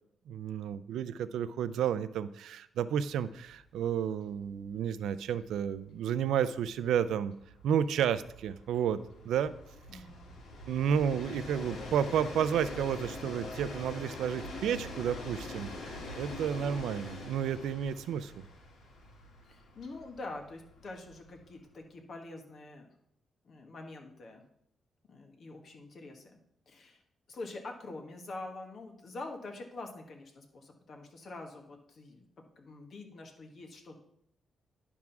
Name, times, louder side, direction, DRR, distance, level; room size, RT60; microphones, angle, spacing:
voice 1, 0.3-7.3 7.6-9.0 9.2-9.5 9.9-10.0 10.7-18.3, right 8 dB, 90° right, 14 dB, 0.4 m, -31 dB
Train, 3.5-3.6 3.9-4.0 4.3-21.7, left 2 dB, 80° left, 1.8 m, -45 dB
voice 2, 9.9-10.3 19.4-22.9 23.4-24.4 25.1-26.3 26.7-27.0 27.3-34.0, left 2 dB, 55° left, 2 dB, 1.5 m, -45 dB
10.5 x 3.6 x 5.9 m, 0.72 s
cardioid pair, 90°, 0 cm